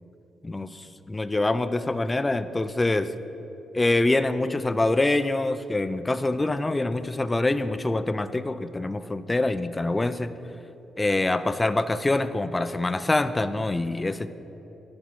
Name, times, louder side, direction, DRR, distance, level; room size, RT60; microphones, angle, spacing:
voice 1, 0.4-3.1 3.7-10.3 11.0-14.3, left 2 dB, 20° left, 12 dB, 0.3 m, -25 dB
10.0 x 5.3 x 4.7 m, 3.0 s
cardioid pair, 90°, 0 cm